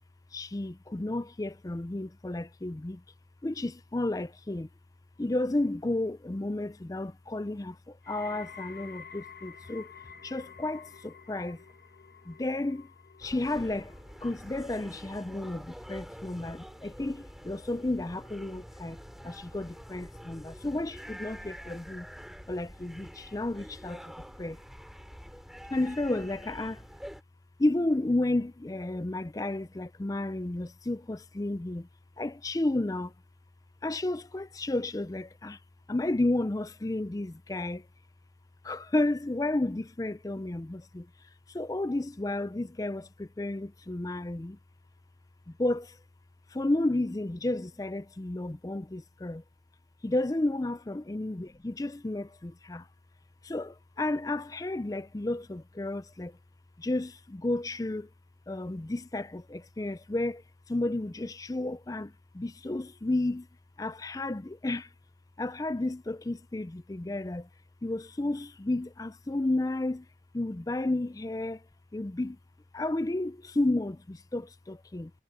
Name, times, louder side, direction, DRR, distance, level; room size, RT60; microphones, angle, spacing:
voice 1, 0.3-3.0 3.4-4.7 5.2-9.9 10.2-11.6 12.3-12.9 13.2-13.9 14.2-19.0 19.2-22.1 22.5-24.1 24.4-24.6 25.7-26.8 27.6-31.9 32.2-33.1 33.8-35.6 35.9-37.8 38.6-41.1 41.5-44.6 45.5-46.0 46.5-49.4 50.0-52.9 53.4-56.4 56.8-58.1 58.5-60.4 60.7-63.5 63.8-64.9 65.4-67.5 67.8-70.1 70.3-71.6 71.9-72.4 72.7-75.1, left 2 dB, 20° left, 0.4 m, -32 dB
sound 1, 8.0-19.2 19.5-20.0 20.7-20.8, left 6 dB, 60° left, 1.2 m, -52 dB
sound 2, 13.2-27.2, equal, ahead, 2.8 m, -47 dB
head